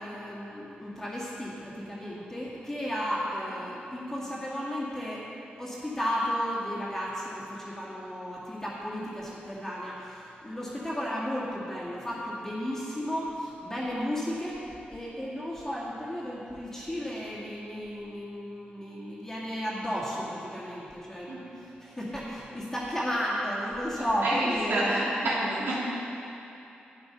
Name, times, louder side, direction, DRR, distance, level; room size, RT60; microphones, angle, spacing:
voice 1, 0.0-5.2 5.6-21.5 21.8-25.8, equal, 15° left, -7 dB, 2.1 m, -34 dB
voice 2, 24.2-25.8, right 1 dB, 90° right, -7 dB, 3.1 m, -28 dB
11.5 x 9.4 x 5.6 m, 2.9 s
wide cardioid pair, 125°, 4 cm